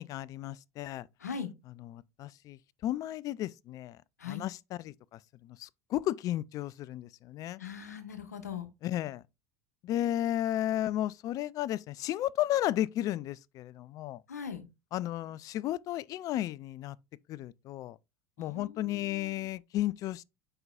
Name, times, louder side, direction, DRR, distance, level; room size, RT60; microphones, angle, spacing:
voice 1, 0.0-1.1 1.9-4.0 4.2-7.6 8.8-9.2 9.8-14.2 14.9-17.0 17.3-18.0 18.4-20.2, left 13 dB, 45° left, 0.4 m, -34 dB
voice 2, 1.2-1.5 4.2-4.5 7.6-8.7 14.3-14.7 18.4-19.5, left 7 dB, 85° left, 1.1 m, -40 dB
7.8 x 5.5 x 2.4 m
hypercardioid pair, 80°, 9 cm